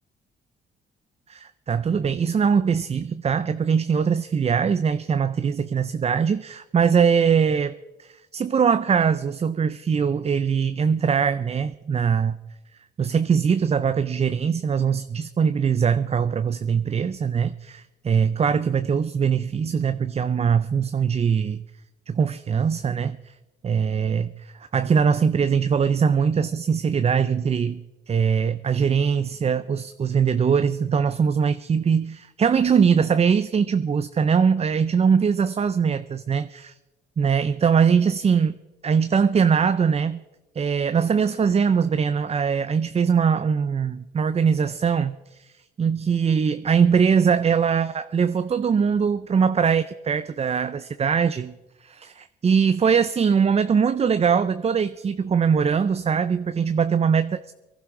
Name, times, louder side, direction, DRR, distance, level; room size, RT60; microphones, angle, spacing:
voice 1, 1.3-7.7 8.0-12.4 13.0-21.6 22.1-23.2 23.6-36.7 37.2-38.5 38.8-40.2 40.6-45.5 45.8-51.5 51.8-57.5, right 6 dB, 30° right, 0.5 m, -22 dB
23.0 x 11.5 x 3.8 m
cardioid pair, 90°, 20 cm